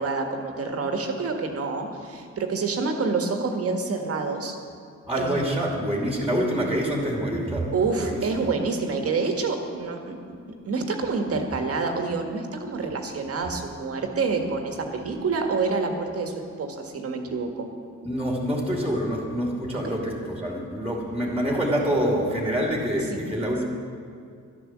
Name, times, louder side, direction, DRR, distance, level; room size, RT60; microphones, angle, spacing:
voice 1, 0.0-4.6 5.2-5.4 7.7-10.2 10.5-17.7 19.8-20.0 23.1-23.2, right 4 dB, 50° right, 4 dB, 1.7 m, -27 dB
voice 2, 5.1-8.4 18.0-23.6, equal, 5° right, -1 dB, 2.5 m, -26 dB
11.5 x 10.5 x 7.5 m, 2.3 s
cardioid pair, 90°, 30 cm